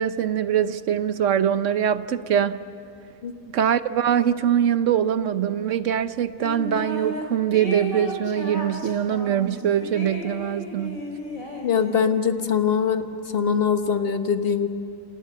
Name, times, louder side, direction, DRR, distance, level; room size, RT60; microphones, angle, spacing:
voice 1, 0.0-2.6 3.5-11.0, right 9 dB, 65° right, 13 dB, 1.1 m, -23 dB
sound 1, 6.4-7.2 7.5-12.2, equal, 80° left, 3.9 m, -34 dB
voice 2, 11.6-13.1 13.3-14.7, left 7 dB, 45° left, 8 dB, 1.4 m, -22 dB
28.5 x 27.0 x 7.0 m, 2.5 s
omnidirectional pair, 1.4 m